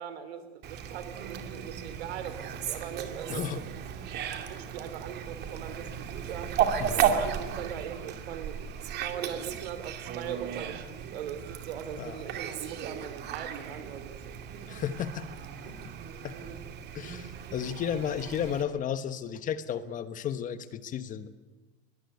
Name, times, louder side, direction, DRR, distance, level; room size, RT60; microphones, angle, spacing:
voice 1, 0.0-3.8 4.4-8.6 8.9-14.8 15.6-15.9, right 9 dB, 80° right, 11 dB, 3.5 m, -40 dB
Fowl, 0.6-18.6, right 8 dB, 30° right, 2.4 m, -35 dB
voice 2, 3.3-3.6 6.8-7.0 11.9-12.2 14.7-15.3 16.2-16.3 16.9-21.3, left 9 dB, 25° left, 12 dB, 1.2 m, -33 dB
22.0 x 21.5 x 9.5 m, 1.2 s
supercardioid pair, 145°, 31 cm